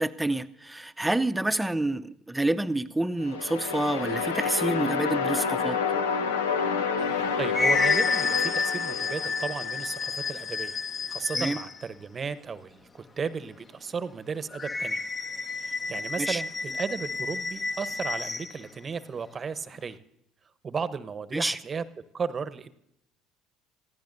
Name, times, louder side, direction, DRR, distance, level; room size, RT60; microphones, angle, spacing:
voice 1, 0.0-5.8 11.3-11.6 16.2-16.4 21.3-21.6, right 1 dB, 10° right, 12 dB, 0.8 m, -28 dB
sound 1, 3.2-10.2, left 5 dB, 80° left, 0.9 m, -29 dB
sound 2, 7.0-11.8 14.5-18.5, left 4 dB, 30° left, 1.1 m, -30 dB
voice 2, 7.4-10.8 11.1-15.0 15.5-20.0 20.6-21.8 22.1-22.7, right 5 dB, 35° right, 14 dB, 1.0 m, -34 dB
28.0 x 15.5 x 2.7 m, 0.79 s
hypercardioid pair, 60°, 0 cm